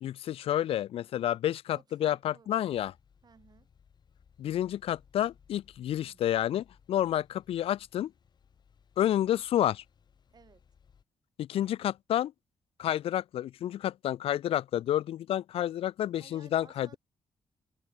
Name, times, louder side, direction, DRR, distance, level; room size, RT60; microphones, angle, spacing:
voice 1, 0.0-2.9 4.4-8.1 9.0-9.8 11.4-12.3 12.8-17.0, left 12 dB, 75° left, 0.4 m, -30 dB
voice 2, 1.7-2.5 3.2-3.7 6.0-6.2 10.3-10.7 16.2-17.0, right 6 dB, 45° right, 5.3 m, -58 dB
sound 1, 2.7-11.0, left 7 dB, 45° left, 1.6 m, -63 dB
cardioid pair, 130°, 10 cm